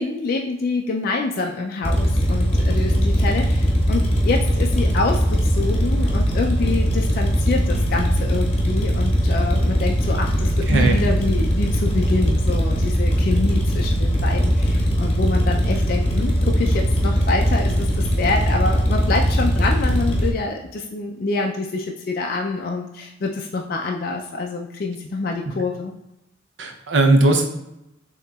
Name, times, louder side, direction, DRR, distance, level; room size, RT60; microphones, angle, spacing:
voice 1, 0.0-25.9, left 3 dB, 45° left, 1 dB, 0.3 m, -26 dB
sound 1, 1.8-20.3, equal, 30° left, 0.8 m, -20 dB
voice 2, 10.4-11.0 26.6-27.5, right 2 dB, 60° right, 4 dB, 0.6 m, -18 dB
6.5 x 2.8 x 2.3 m, 0.87 s
head